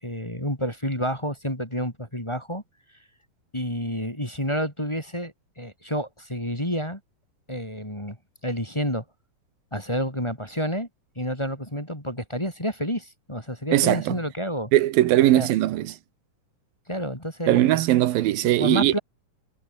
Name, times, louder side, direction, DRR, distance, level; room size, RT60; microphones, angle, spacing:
voice 1, 0.0-2.6 3.5-7.0 7.5-8.2 8.4-9.0 9.7-10.9 11.2-14.7 15.3-15.5 16.9-17.8 18.4-19.0, equal, 10° left, 3.7 m, -29 dB
voice 2, 13.7-14.2 14.7-16.0 17.5-18.9, right 14 dB, 85° right, 2.9 m, -20 dB
omnidirectional pair, 4.0 m